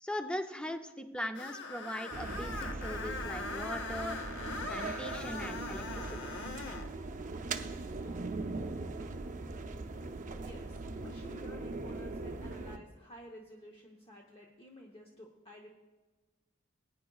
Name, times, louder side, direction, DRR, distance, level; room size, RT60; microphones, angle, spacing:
voice 1, 0.0-4.2 4.7-6.3, equal, 5° left, 7 dB, 0.5 m, -40 dB
Screech, 1.4-6.9, left 3 dB, 60° left, 0.8 m, -41 dB
sound 1, 2.1-12.8, right 3 dB, 40° right, 0.6 m, -40 dB
voice 2, 10.4-15.7, equal, 25° left, 1 dB, 0.9 m, -52 dB
20.0 x 9.3 x 2.3 m, 1.3 s
head